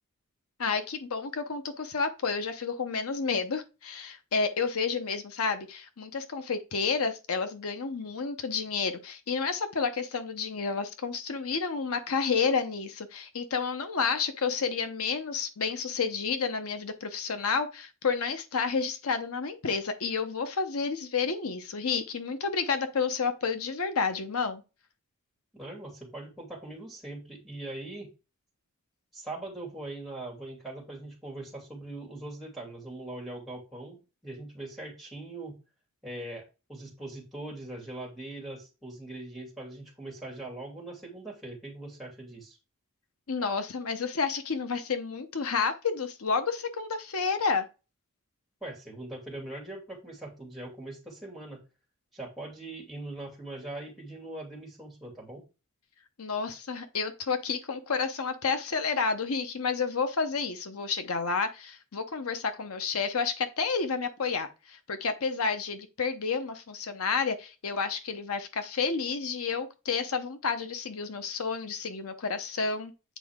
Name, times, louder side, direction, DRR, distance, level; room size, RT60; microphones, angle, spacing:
voice 1, 0.6-24.6 43.3-47.7 56.2-72.9, left 5 dB, 75° left, 0.8 m, -30 dB
voice 2, 25.5-28.1 29.1-35.6 36.0-36.4 36.7-42.6 48.6-51.6 52.1-55.4, right 2 dB, ahead, 2.7 m, -41 dB
8.3 x 4.7 x 3.6 m
head